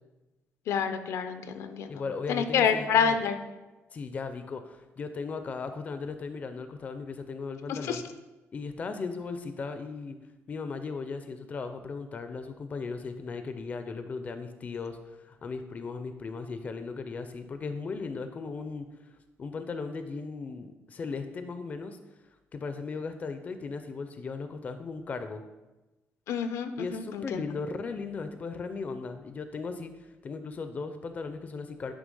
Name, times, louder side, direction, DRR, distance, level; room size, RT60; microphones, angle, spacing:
voice 1, 0.7-2.0 2.3-3.4 7.7-8.0 26.3-27.4, left 7 dB, 75° left, 9 dB, 0.6 m, -28 dB
voice 2, 1.9-3.2 3.9-8.0 8.5-10.2 10.5-18.9 19.4-22.0 22.5-25.4 26.8-31.9, left 4 dB, 30° left, 9 dB, 0.4 m, -37 dB
9.6 x 3.3 x 5.4 m, 1.1 s
cardioid pair, 155°, 5 cm